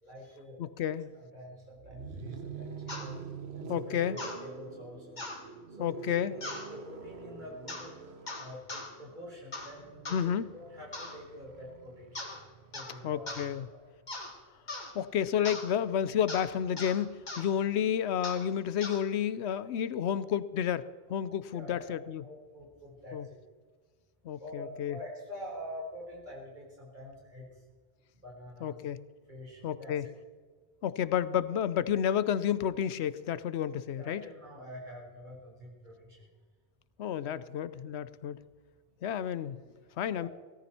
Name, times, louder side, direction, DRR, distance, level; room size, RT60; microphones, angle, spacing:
voice 1, 0.0-3.2 3.6-5.2 5.8-8.0 8.4-12.4 12.7-13.8 21.5-22.0 22.2-23.4 24.4-27.5 28.2-28.8 29.3-30.1 34.0-36.3 40.1-40.3, equal, 45° right, -3 dB, 4.7 m, -47 dB
voice 2, 0.6-1.1 3.7-4.2 5.8-6.3 10.1-10.5 13.0-13.7 14.9-22.2 23.1-23.3 24.2-25.0 28.6-29.0 29.6-30.1 30.8-34.2 37.0-38.4 39.0-39.6 40.0-40.3, left 9 dB, 85° left, 15 dB, 0.9 m, -31 dB
sound 1, 1.7-13.7 15.0-18.6, right 5 dB, 75° right, 1.4 m, -47 dB
sound 2, 2.9-3.1 4.2-4.4 5.2-5.4 6.4-6.7 7.7-7.9 8.3-8.9 9.5-9.7 10.1-10.2 10.9-11.2 12.2-12.4 12.7-13.0 13.3-13.5 14.1-14.3 14.7-14.9 15.5-15.7 16.3-16.5 16.8-17.0 17.3-17.5 18.2-18.4 18.8-19.0, left 2 dB, 45° left, 2.3 m, -39 dB
17.5 x 14.0 x 4.3 m, 1.5 s
omnidirectional pair, 1.1 m